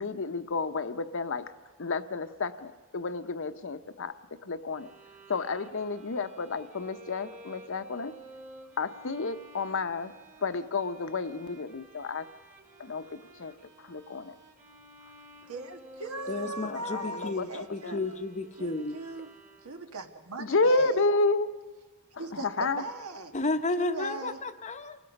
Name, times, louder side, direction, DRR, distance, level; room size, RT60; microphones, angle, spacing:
voice 1, 0.0-1.5 1.8-4.1 4.4-4.9 5.3-8.1 8.8-10.1 10.4-12.3 12.8-13.5 13.8-14.3 16.6-18.0 20.4-21.5 22.4-22.8, left 3 dB, 60° left, 10 dB, 0.8 m, -30 dB
Bowed string instrument, 4.7-20.0, right 1 dB, 35° right, 2.3 m, -52 dB
voice 2, 15.5-18.1 18.6-19.3 19.6-21.0 22.2-23.4 23.8-24.4, right 3 dB, 80° right, 6 dB, 1.6 m, -39 dB
voice 3, 16.3-19.0 23.3-25.0, left 2 dB, 30° left, 9 dB, 0.8 m, -32 dB
28.5 x 18.5 x 5.4 m, 1.2 s
head